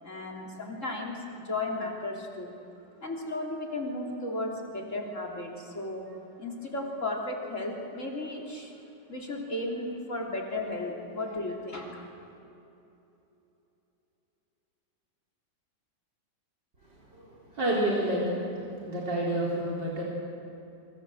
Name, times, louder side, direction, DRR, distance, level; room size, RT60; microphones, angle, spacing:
voice 1, 0.0-2.5 3.0-6.1 6.4-8.7 9.1-12.1, left 2 dB, 40° left, 0 dB, 3.7 m, -35 dB
voice 2, 17.1-18.3 18.8-20.0, right 1 dB, 75° right, -4 dB, 4.4 m, -29 dB
27.0 x 24.0 x 7.9 m, 2.9 s
omnidirectional pair, 1.9 m